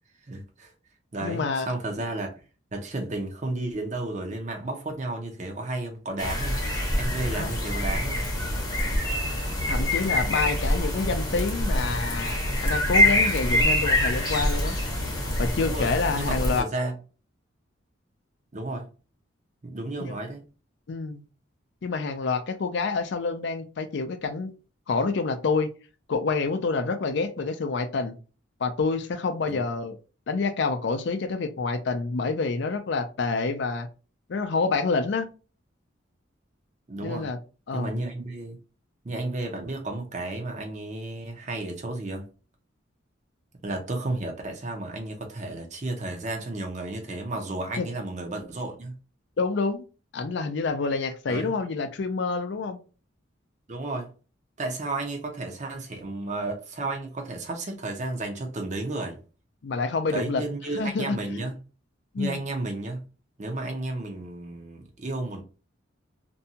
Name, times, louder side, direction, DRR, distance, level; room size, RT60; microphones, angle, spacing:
voice 1, 0.3-0.7 1.1-2.3 2.7-6.6 7.0-8.2 15.6-16.9 18.5-18.9 19.6-20.4 29.5-29.7 36.9-37.3 37.7-38.6 39.0-42.3 43.6-48.9 51.3-51.5 53.7-54.1 54.6-59.2 60.1-61.6 62.2-63.0 63.4-65.4, right 2 dB, 35° right, 0.6 m, -33 dB
voice 2, 1.2-1.7 7.3-7.5 9.7-14.8 15.4-16.6 20.0-20.1 20.9-21.2 21.8-24.5 24.9-25.7 26.1-28.2 28.6-30.0 30.3-33.9 34.3-35.3 37.0-37.4 37.7-37.9 47.8-47.9 49.4-49.8 50.1-52.8 59.6-60.4 60.8-61.5 62.1-62.4, left 4 dB, 60° left, 0.4 m, -27 dB
sound 1, 6.2-16.6, left 1 dB, 20° left, 0.7 m, -25 dB
2.6 x 2.2 x 2.7 m
head